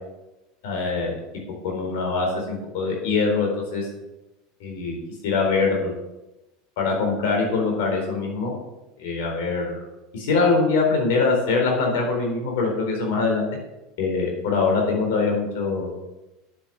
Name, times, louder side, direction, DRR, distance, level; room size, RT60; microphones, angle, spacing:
voice 1, 0.6-1.1 1.6-3.9 4.6-5.0 5.2-6.0 6.8-8.5 9.0-9.8 10.1-13.5 14.0-16.0, left 4 dB, 70° left, 0 dB, 4.1 m, -23 dB
9.8 x 7.3 x 7.8 m, 0.98 s
hypercardioid pair, 90°, 0 cm